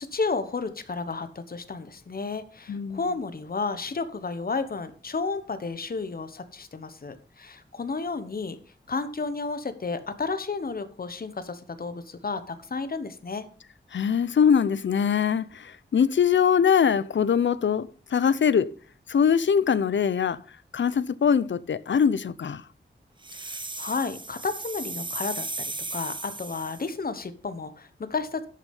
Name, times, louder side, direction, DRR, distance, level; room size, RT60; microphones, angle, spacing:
voice 1, 0.0-8.6 8.9-13.5 23.3-28.5, left 4 dB, 50° left, 1.1 m, -32 dB
voice 2, 2.7-3.0 13.9-18.7 19.1-20.4 20.7-22.6, left 7 dB, 80° left, 0.6 m, -22 dB
sound 1, 23.2-26.9, right 3 dB, 25° right, 0.9 m, -36 dB
11.5 x 6.4 x 5.4 m
wide cardioid pair, 100°, 19 cm